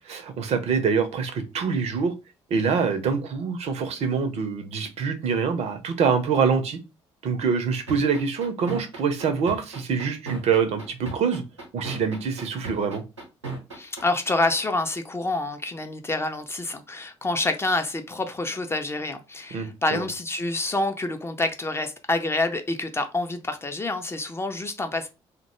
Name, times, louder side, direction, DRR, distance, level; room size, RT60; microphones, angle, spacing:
voice 1, 0.1-2.1 2.5-6.8 7.2-11.4 11.7-13.0 19.5-20.0, right 6 dB, 45° right, 0.5 m, -25 dB
sound 1, 7.9-14.0, right 3 dB, 90° right, 0.7 m, -34 dB
voice 2, 13.7-25.1, left 2 dB, 15° left, 0.4 m, -27 dB
2.1 x 2.0 x 3.0 m
figure-of-eight pair, 45°, 15 cm